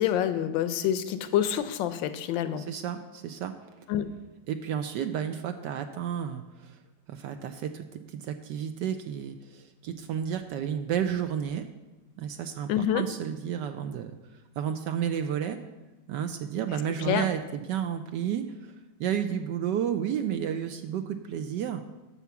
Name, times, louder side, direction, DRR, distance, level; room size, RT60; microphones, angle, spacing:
voice 1, 0.0-2.6 3.9-4.1 12.7-13.0 17.1-17.2, left 10 dB, 80° left, 11 dB, 1.4 m, -27 dB
voice 2, 2.6-3.5 4.5-6.8 7.1-11.7 12.2-15.6 16.1-18.7 19.0-21.8, right 9 dB, 75° right, 7 dB, 1.2 m, -32 dB
8.3 x 5.8 x 7.0 m, 1.1 s
omnidirectional pair, 2.0 m